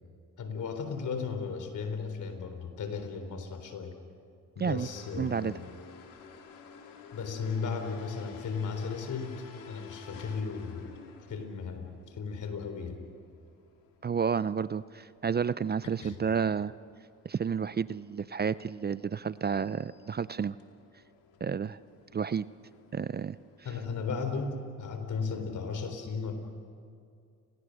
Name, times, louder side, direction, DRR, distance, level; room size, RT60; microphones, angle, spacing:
voice 1, 0.4-3.9 4.6-5.6 7.1-9.4 9.7-10.9 11.3-13.0 16.0-16.2 23.6-26.3, left 5 dB, 65° left, 7 dB, 3.8 m, -35 dB
sound 1, 4.8-24.2, left 5 dB, 85° left, 2.6 m, -52 dB
voice 2, 5.2-5.5 14.0-16.7 17.2-20.6 21.4-21.8 22.1-22.5 22.9-23.4, right 6 dB, 30° right, 17 dB, 0.5 m, -31 dB
30.0 x 21.5 x 6.5 m, 2.3 s
supercardioid pair, 60°, 33 cm